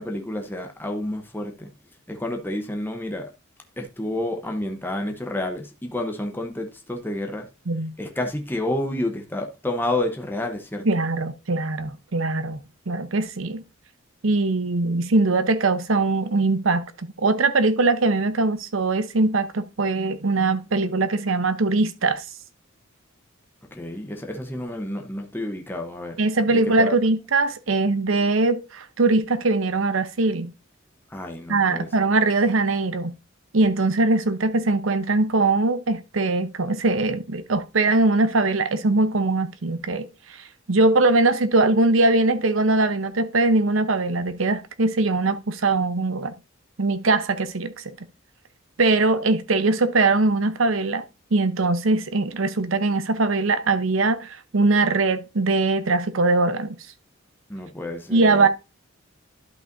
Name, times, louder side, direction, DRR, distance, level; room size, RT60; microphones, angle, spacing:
voice 1, 0.0-1.7 2.1-3.3 3.8-7.5 8.0-10.8 23.7-26.2 26.5-26.9 31.1-31.9 57.5-58.5, left 1 dB, 10° left, 0.8 m, -30 dB
voice 2, 10.8-13.6 14.2-22.2 26.2-30.5 31.5-33.1 33.5-40.1 40.7-46.3 46.8-47.9 48.8-51.0 51.3-56.8 58.1-58.5, right 3 dB, 75° right, 0.8 m, -21 dB
11.5 x 5.6 x 2.6 m
head